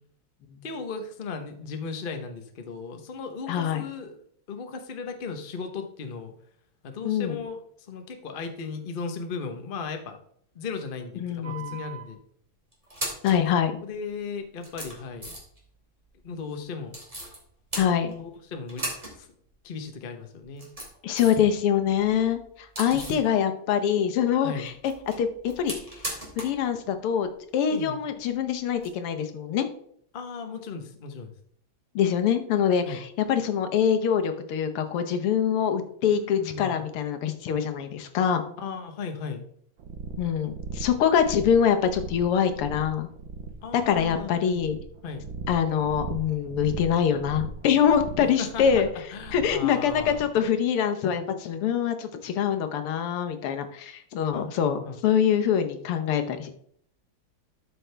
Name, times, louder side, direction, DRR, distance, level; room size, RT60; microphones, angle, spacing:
voice 1, 0.6-4.2 4.5-6.3 6.8-7.6 7.9-10.2 10.5-12.2 13.8-15.3 16.2-16.9 18.2-18.9 19.2-19.3 19.6-20.7 22.9-23.0 24.4-24.7 27.7-28.0 30.1-31.3 32.8-33.0 36.1-36.8 38.6-39.5 43.6-44.6 45.0-45.2 48.4-48.8 49.1-50.2 54.3-55.0, left 5 dB, 45° left, 6 dB, 0.7 m, -36 dB
voice 2, 3.5-3.8 7.1-7.4 11.2-11.8 13.2-13.7 17.8-18.1 21.0-24.7 25.2-25.7 26.4-27.3 27.5-29.7 32.0-38.4 40.2-43.1 43.7-44.8 45.5-48.9 49.3-56.5, left 8 dB, 90° left, 7 dB, 1.9 m, -24 dB
sound 1, 11.4-12.0 12.7-13.4 14.1-14.2 14.6-15.6 16.9-17.4 17.7-18.4 18.7-19.2 19.5-19.6 20.4-21.5 21.8-23.3 24.7-26.6 26.9-27.0 28.8-28.9, right 1 dB, 15° right, 2.7 m, -37 dB
sound 2, 39.8-50.3, right 4 dB, 65° right, 1.7 m, -39 dB
12.5 x 6.2 x 3.4 m, 0.65 s
omnidirectional pair, 2.4 m